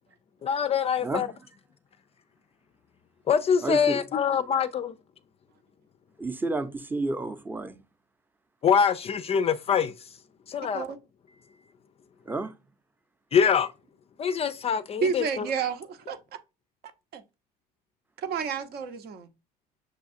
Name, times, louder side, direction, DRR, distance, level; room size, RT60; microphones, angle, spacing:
voice 1, 0.4-1.3 3.3-4.9 8.6-10.1 10.5-10.9 13.3-13.7 14.2-15.5, left 7 dB, 35° left, 0.4 m, -24 dB
voice 2, 3.6-4.0 6.2-7.8 12.3-12.5, right 2 dB, 10° right, 0.6 m, -30 dB
voice 3, 10.6-11.0 15.0-16.2 17.1-17.2 18.2-19.3, right 6 dB, 55° right, 0.8 m, -30 dB
6.4 x 2.3 x 2.6 m
supercardioid pair, 90°, 19 cm